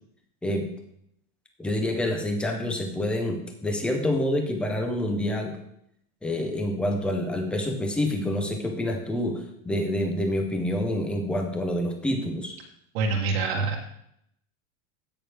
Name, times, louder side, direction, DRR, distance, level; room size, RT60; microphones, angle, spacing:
voice 1, 1.6-5.6 6.2-12.6, left 1 dB, 5° left, 3 dB, 0.6 m, -27 dB
voice 2, 12.9-14.0, right 4 dB, 50° right, 0 dB, 1.4 m, -26 dB
15.5 x 6.3 x 3.4 m, 0.75 s
supercardioid pair, 170°, 41 cm